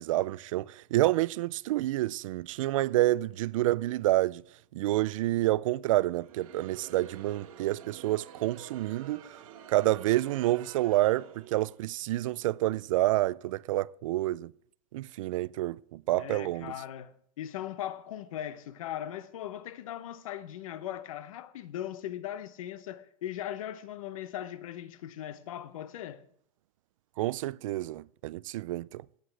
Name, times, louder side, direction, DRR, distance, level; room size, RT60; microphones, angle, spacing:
voice 1, 0.0-4.4 4.7-9.3 9.7-14.5 14.9-16.7 27.2-29.0, right 16 dB, 70° right, 0.4 m, -28 dB
Crowd, 6.1-11.8, right 8 dB, 90° right, 2.0 m, -49 dB
voice 2, 16.2-26.3, left 11 dB, 75° left, 0.9 m, -39 dB
17.0 x 8.3 x 3.3 m
supercardioid pair, 175°, 17 cm